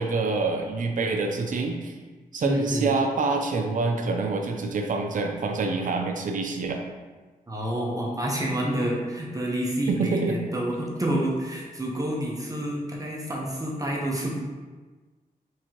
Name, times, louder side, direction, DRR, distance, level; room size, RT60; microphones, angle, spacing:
voice 1, 0.0-1.9 2.3-6.8 9.9-10.4, right 3 dB, 60° right, 3 dB, 0.5 m, -26 dB
voice 2, 2.4-2.9 7.5-14.4, right 1 dB, 25° right, -2 dB, 0.8 m, -28 dB
4.7 x 3.5 x 2.9 m, 1.3 s
cardioid pair, 85°, 15 cm